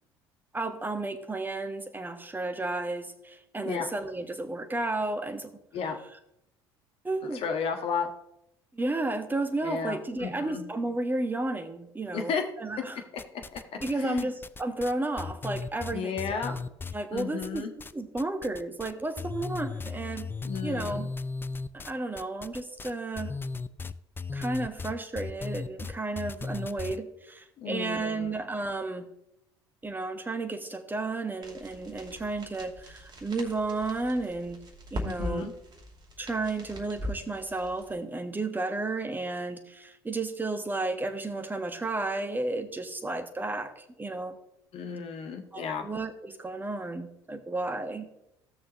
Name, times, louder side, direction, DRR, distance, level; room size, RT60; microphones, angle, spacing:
voice 1, 0.5-5.6 7.0-7.4 8.7-12.3 12.6-13.0 13.8-16.6 16.9-17.7 17.9-20.3 20.6-21.1 21.7-23.3 24.3-29.1 29.8-34.6 34.9-35.5 36.2-44.4 45.5-48.1, right 2 dB, 15° right, 8 dB, 1.3 m, -32 dB
voice 2, 7.2-8.1 9.6-10.6 12.1-12.4 13.5-13.6 13.9-14.3 15.9-16.5 17.1-17.7 20.4-21.0 27.6-28.4 35.0-35.5 44.7-45.9, left 6 dB, 50° left, 5 dB, 1.5 m, -33 dB
sound 1, 13.2-13.9 14.2-17.9 18.2-18.9 19.2-27.0, left 4 dB, 15° left, 0.5 m, -36 dB
sound 2, 31.4-38.0, equal, 35° right, 2.5 m, -41 dB
16.0 x 6.4 x 3.0 m, 0.81 s
figure-of-eight pair, 60°, 13 cm